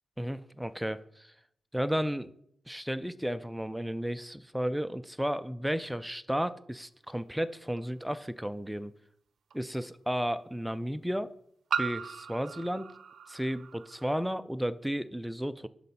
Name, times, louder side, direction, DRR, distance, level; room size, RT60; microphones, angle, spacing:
voice 1, 0.2-1.3 1.7-2.3 2.7-8.9 9.5-11.3 11.8-12.9 13.3-15.7, equal, 5° right, 14 dB, 0.3 m, -33 dB
sound 1, 7.8-7.9 9.5-9.6 11.7-14.2, right 7 dB, 65° right, 0.5 m, -37 dB
11.0 x 4.1 x 5.5 m, 0.71 s
wide cardioid pair, 145°, 0 cm